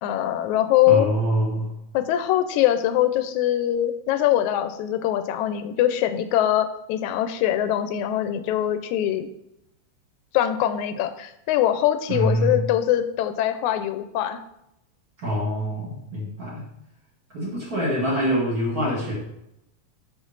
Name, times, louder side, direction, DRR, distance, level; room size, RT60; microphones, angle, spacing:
voice 1, 0.0-1.1 1.9-9.3 10.3-14.4, left 12 dB, 85° left, 10 dB, 2.0 m, -22 dB
voice 2, 0.9-1.7 12.1-12.6 15.2-16.6 17.3-19.1, equal, 35° right, -4 dB, 1.9 m, -25 dB
7.1 x 5.9 x 4.0 m, 0.81 s
omnidirectional pair, 3.3 m